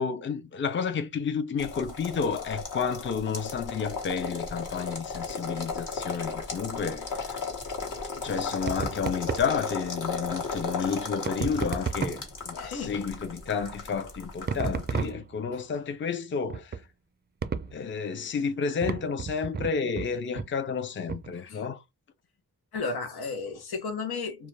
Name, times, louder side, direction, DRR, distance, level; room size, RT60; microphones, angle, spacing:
voice 1, 0.0-7.4 8.2-12.2 12.5-16.8 17.7-21.8, left 6 dB, 35° left, 0.4 m, -31 dB
sound 1, 1.6-15.1, left 4 dB, 60° left, 1.0 m, -35 dB
sound 2, 8.6-9.5 11.3-12.4 14.5-15.5 16.5-16.8 17.4-17.8 18.8-20.1 20.4-20.5 21.1-21.3, right 5 dB, 30° right, 0.3 m, -32 dB
voice 2, 12.6-13.0 15.5-15.6 21.5-21.6 22.7-24.5, left 4 dB, 85° left, 0.7 m, -34 dB
2.3 x 2.2 x 3.0 m
wide cardioid pair, 80°, 37 cm